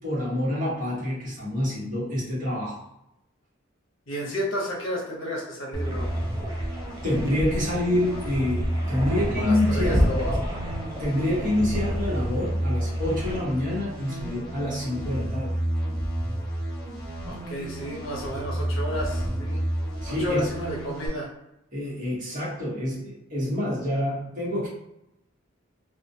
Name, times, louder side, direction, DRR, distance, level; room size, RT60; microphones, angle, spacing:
voice 1, 0.0-2.8 7.0-10.1 11.0-15.6 20.0-20.5 21.7-24.7, left 1 dB, 40° right, -7 dB, 1.0 m, -27 dB
voice 2, 4.1-6.1 9.2-10.4 17.2-19.6 20.1-21.3, equal, 70° left, -2 dB, 0.8 m, -31 dB
sound 1, 5.7-21.1, right 1 dB, 5° left, 1.0 m, -31 dB
sound 2, 5.8-13.4, equal, 20° right, 0.4 m, -31 dB
2.3 x 2.2 x 2.6 m, 0.84 s
head